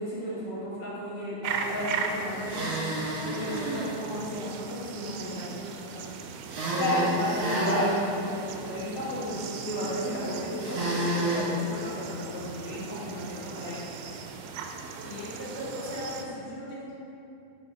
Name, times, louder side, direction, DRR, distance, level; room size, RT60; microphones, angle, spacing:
voice 1, 0.0-2.8 3.2-6.1 6.8-13.8, left 1 dB, 50° left, -10 dB, 2.3 m, -33 dB
sound 1, 1.4-16.3, right 5 dB, 85° right, 2.7 m, -39 dB
sound 2, 2.4-3.9 6.5-8.0 10.6-11.5, right 1 dB, 60° right, 3.3 m, -29 dB
voice 2, 15.0-16.9, left 1 dB, 80° left, -9 dB, 1.1 m, -38 dB
6.8 x 4.3 x 5.6 m, 2.6 s
omnidirectional pair, 5.3 m